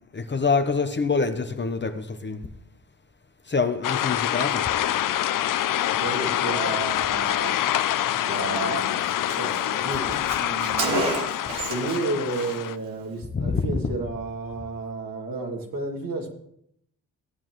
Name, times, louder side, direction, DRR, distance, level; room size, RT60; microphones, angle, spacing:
voice 1, 0.1-2.4 3.5-4.7 13.3-13.7, left 4 dB, 30° left, 0.9 m, -25 dB
sound 1, 3.8-12.8, left 12 dB, 60° left, 0.5 m, -26 dB
voice 2, 5.8-7.6 8.2-9.1 9.3-11.1 11.7-16.3, right 3 dB, 60° right, 2.6 m, -32 dB
Car, 8.4-8.5 8.8-8.9 9.1-12.0 12.3-12.6, right 3 dB, 85° right, 1.5 m, -30 dB
15.5 x 8.5 x 3.1 m
supercardioid pair, 55°, 38 cm